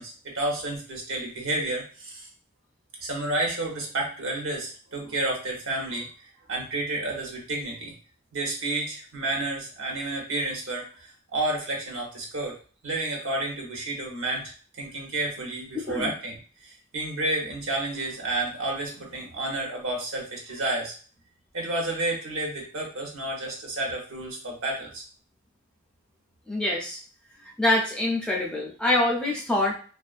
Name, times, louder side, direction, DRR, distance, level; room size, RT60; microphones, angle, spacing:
voice 1, 0.0-2.3 3.0-6.1 6.5-7.9 8.3-12.6 12.8-20.9 21.5-25.0, right 2 dB, 75° right, -1 dB, 0.8 m, -31 dB
voice 2, 15.7-16.1 26.5-27.0 27.6-29.8, left 1 dB, 5° left, -3 dB, 0.5 m, -25 dB
2.3 x 2.1 x 2.5 m, 0.39 s
head